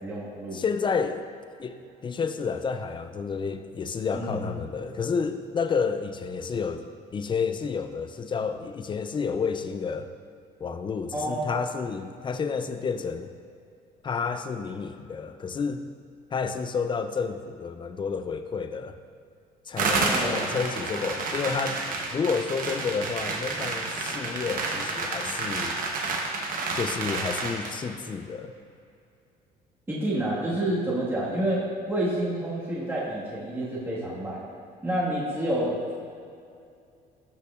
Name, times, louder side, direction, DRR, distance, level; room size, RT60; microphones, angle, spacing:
voice 1, 0.0-0.6 4.1-4.4 11.1-11.5 20.1-20.4 29.9-31.6 31.9-34.5 34.8-35.9, right 1 dB, 15° right, -7 dB, 1.6 m, -28 dB
voice 2, 0.5-1.2 1.6-1.8 2.0-6.8 7.1-10.1 10.6-13.3 14.0-15.8 16.3-19.0 19.7-21.8 22.1-25.7 26.7-28.5, left 5 dB, 30° left, 9 dB, 0.4 m, -30 dB
sound 1, 19.8-27.8, right 3 dB, 55° right, 1.0 m, -30 dB
12.5 x 5.6 x 2.4 m, 2.4 s
cardioid pair, 110°, 17 cm